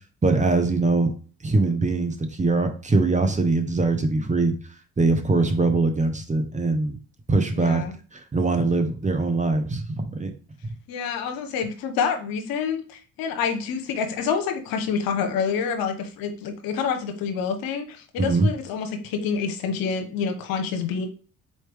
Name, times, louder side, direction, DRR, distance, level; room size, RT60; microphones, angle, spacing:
voice 1, 0.2-1.1 1.4-4.5 5.0-7.0 7.3-7.8 8.1-10.3 18.2-18.5, right 3 dB, 20° right, 6 dB, 1.0 m, -22 dB
voice 2, 7.5-7.9 10.9-21.1, left 6 dB, 70° left, 6 dB, 0.9 m, -27 dB
4.4 x 3.1 x 3.4 m, 0.38 s
hypercardioid pair, 55°, 36 cm